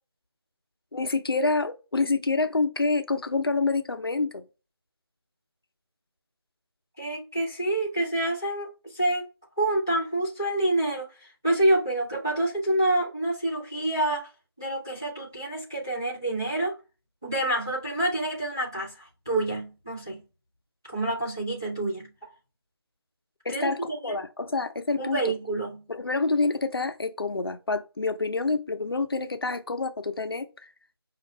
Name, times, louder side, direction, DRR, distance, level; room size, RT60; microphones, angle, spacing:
voice 1, 0.9-4.4 23.4-25.3 25.9-30.5, left 3 dB, 60° left, 0.6 m, -27 dB
voice 2, 7.0-9.3 9.6-14.3 14.6-16.8 17.2-20.2 20.9-22.1 23.5-24.2 25.0-25.8, right 1 dB, 10° right, 0.5 m, -27 dB
5.3 x 2.5 x 3.0 m
figure-of-eight pair, 170°, 14 cm